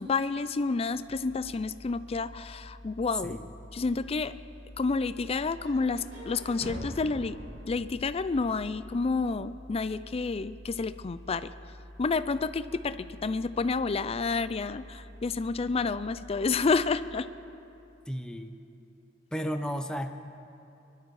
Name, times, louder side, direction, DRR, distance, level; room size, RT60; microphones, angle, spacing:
voice 1, 0.0-3.4 3.7-4.4 4.8-7.4 7.7-11.5 12.0-17.3, left 4 dB, 30° left, 14 dB, 0.4 m, -29 dB
sound 1, 0.9-17.0, left 1 dB, 45° right, 2.8 m, -49 dB
sound 2, 5.6-9.5, equal, 85° right, 2.3 m, -44 dB
voice 2, 18.1-18.6 19.3-20.1, equal, 5° left, 5 dB, 0.7 m, -33 dB
24.5 x 12.0 x 4.8 m, 2.7 s
head